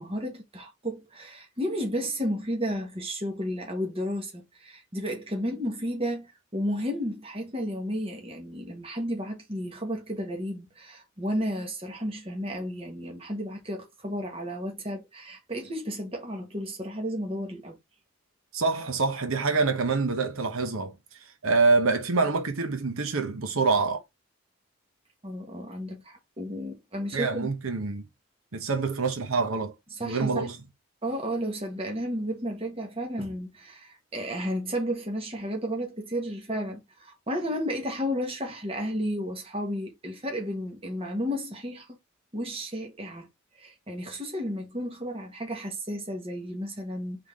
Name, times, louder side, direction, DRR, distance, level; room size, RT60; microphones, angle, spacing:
voice 1, 0.0-17.8 25.2-27.5 29.9-30.5 31.0-42.0 42.3-43.3 43.6-47.3, equal, 25° right, 1.3 m, -33 dB
voice 2, 18.5-20.9 21.4-24.0 27.1-28.1 28.5-29.7 30.0-30.6, right 4 dB, 80° right, 0.9 m, -26 dB
3.6 x 3.6 x 3.5 m
head